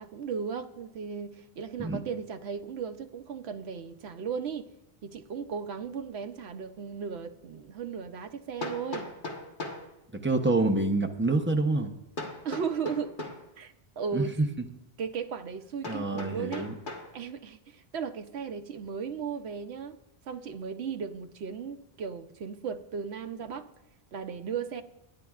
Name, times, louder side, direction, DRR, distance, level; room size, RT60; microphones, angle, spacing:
voice 1, 0.0-4.7 5.0-9.1 12.4-13.2 13.6-14.4 15.0-16.7 17.1-20.0 20.3-23.7 24.1-24.8, right 6 dB, 75° right, 1.0 m, -36 dB
Hammer, 7.0-7.1 8.6-9.9 12.2-13.5 15.8-17.1, left 2 dB, 50° left, 1.5 m, -38 dB
voice 2, 10.2-11.9 14.1-14.3 15.8-16.7, right 2 dB, 10° right, 0.8 m, -27 dB
23.0 x 10.0 x 2.4 m
omnidirectional pair, 1.1 m